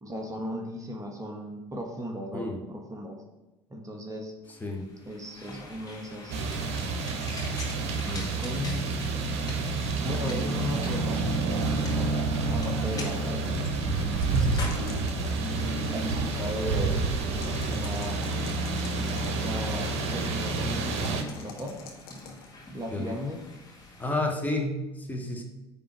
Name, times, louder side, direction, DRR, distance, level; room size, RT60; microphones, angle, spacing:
voice 1, 0.0-3.2 3.7-4.3 5.0-6.4 7.8-9.5 10.0-15.1 15.9-17.0 17.6-18.2 19.3-21.7 22.7-23.4, equal, 25° right, 2 dB, 1.3 m, -37 dB
sound 1, 4.4-24.2, left 2 dB, 25° left, 2.3 m, -47 dB
sound 2, 6.3-21.2, right 3 dB, 50° right, 1.1 m, -29 dB
sound 3, 13.9-15.8 17.2-19.6 20.9-22.5, left 7 dB, 65° left, 1.2 m, -47 dB
voice 2, 24.0-24.8 25.1-25.4, left 2 dB, 10° left, 1 dB, 1.5 m, -30 dB
9.4 x 3.8 x 6.1 m, 1.0 s
figure-of-eight pair, 65°, 14 cm